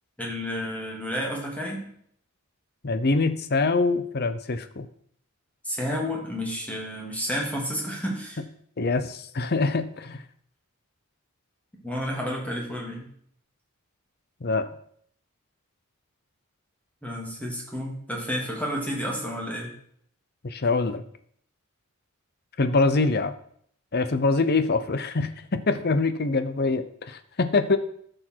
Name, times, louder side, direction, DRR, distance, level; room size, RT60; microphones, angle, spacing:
voice 1, 0.2-1.9 5.6-8.4 11.8-13.1 17.0-19.7, equal, 5° left, -2 dB, 2.5 m, -31 dB
voice 2, 2.8-4.9 8.8-10.2 14.4-14.7 20.4-21.0 22.6-23.3 23.9-27.8, left 3 dB, 45° left, 11 dB, 0.7 m, -24 dB
13.0 x 6.5 x 4.6 m, 0.65 s
head